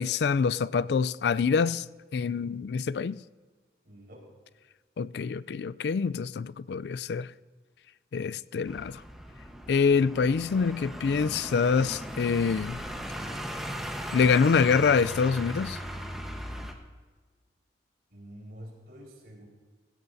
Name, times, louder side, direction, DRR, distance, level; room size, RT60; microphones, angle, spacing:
voice 1, 0.0-1.9 2.1-3.2 5.0-7.3 8.1-9.0 9.7-12.8 14.1-15.8, left 5 dB, 75° left, 0.3 m, -25 dB
voice 2, 3.8-4.2 18.1-19.5, equal, 60° right, 4.5 m, -47 dB
sound 1, 8.7-16.7, equal, ahead, 1.1 m, -38 dB
16.5 x 16.0 x 2.7 m
head